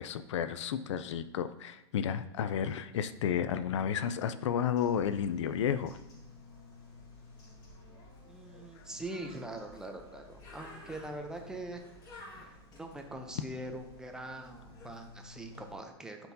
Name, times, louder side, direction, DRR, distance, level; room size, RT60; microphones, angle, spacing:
voice 1, 0.0-6.0 8.8-8.9, left 8 dB, 85° left, 12 dB, 0.5 m, -32 dB
Bird, 4.8-15.7, left 2 dB, 25° left, 1.9 m, -53 dB
voice 2, 8.3-11.8 12.7-16.2, right 1 dB, 5° right, 4 dB, 0.6 m, -43 dB
11.5 x 4.5 x 2.7 m, 0.92 s
supercardioid pair, 150°, 15 cm